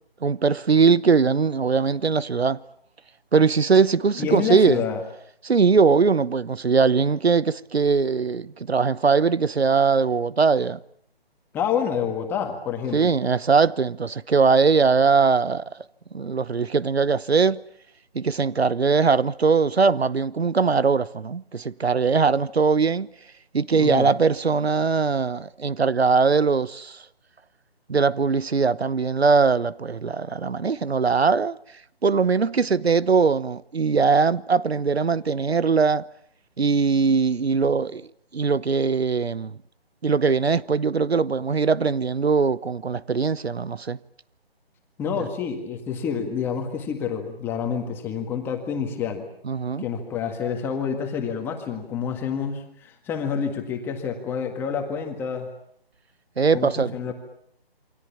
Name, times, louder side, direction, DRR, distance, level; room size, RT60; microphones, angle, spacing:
voice 1, 0.2-2.6 3.3-4.8 5.4-10.8 12.9-15.7 16.1-17.6 18.1-23.1 23.5-27.0 27.9-31.6 32.0-36.1 36.6-38.0 38.3-39.6 40.0-44.0 45.1-45.3 49.4-49.8 56.4-56.9, right 5 dB, 90° right, 1.0 m, -21 dB
voice 2, 4.2-5.0 11.5-13.1 23.7-24.1 45.0-49.3 49.8-55.5 56.5-57.1, left 7 dB, 5° left, 1.8 m, -28 dB
28.5 x 24.0 x 7.2 m
figure-of-eight pair, 160°, 30 cm